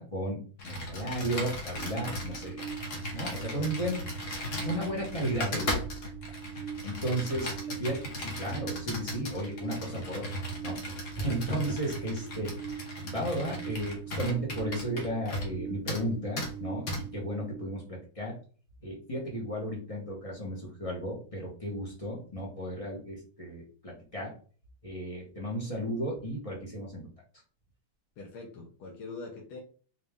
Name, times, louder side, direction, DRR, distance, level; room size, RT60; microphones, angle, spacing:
voice 1, 0.0-2.6 3.1-4.0 4.6-5.7 6.3-6.4 6.8-7.5 7.8-12.5 13.0-18.4 18.8-24.3 24.8-27.1, right 1 dB, 25° left, -3 dB, 0.7 m, -34 dB
Computer keyboard, 0.6-15.6 15.9-16.0 16.4-16.5 16.9-17.0, left 1 dB, 50° left, 1.0 m, -37 dB
sound 1, 1.8-17.6, right 8 dB, 60° right, 0.9 m, -42 dB
voice 2, 28.2-29.6, left 3 dB, 75° left, -1 dB, 1.8 m, -43 dB
4.2 x 2.6 x 3.5 m, 0.40 s
omnidirectional pair, 2.4 m